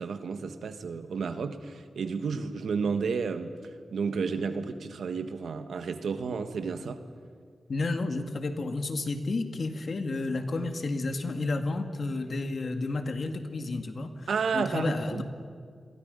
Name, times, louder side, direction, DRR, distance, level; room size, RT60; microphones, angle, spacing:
voice 1, 0.0-3.5 3.9-7.0 14.3-15.2, right 5 dB, 90° right, 8 dB, 1.5 m, -31 dB
voice 2, 7.7-15.2, left 3 dB, 55° left, 6 dB, 2.0 m, -31 dB
29.0 x 23.0 x 5.4 m, 2.1 s
wide cardioid pair, 100°, 0 cm